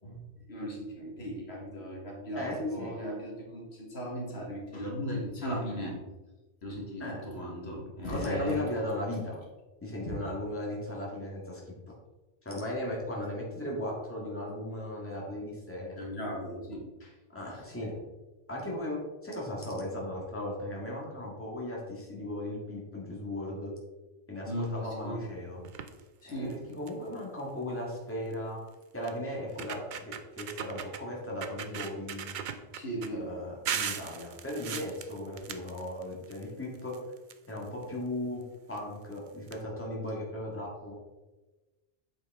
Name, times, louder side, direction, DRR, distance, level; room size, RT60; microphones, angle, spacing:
voice 1, 0.0-5.9 6.6-8.6 16.0-17.2 17.5-17.6 24.5-25.2 26.2-26.6 32.7-33.3, equal, 70° left, -2 dB, 1.7 m, -37 dB
voice 2, 2.3-2.9 7.0-7.2 8.1-9.4 9.8-11.6 12.4-16.0 17.3-18.0 18.5-23.7 24.3-25.6 26.2-28.6 28.9-32.4 33.1-36.9 37.5-38.4 38.7-40.9, left 1 dB, 10° left, -3 dB, 1.7 m, -36 dB
sound 1, 25.6-26.0 26.5-26.6 26.9-27.1 28.3-28.4 29.1-29.2 29.5-31.0 31.4-33.1 33.7-36.4 36.7-37.8 38.7-38.8 39.1-39.2 39.5-39.6, right 8 dB, 55° right, 0.6 m, -38 dB
8.2 x 4.9 x 3.6 m, 1.1 s
omnidirectional pair, 1.1 m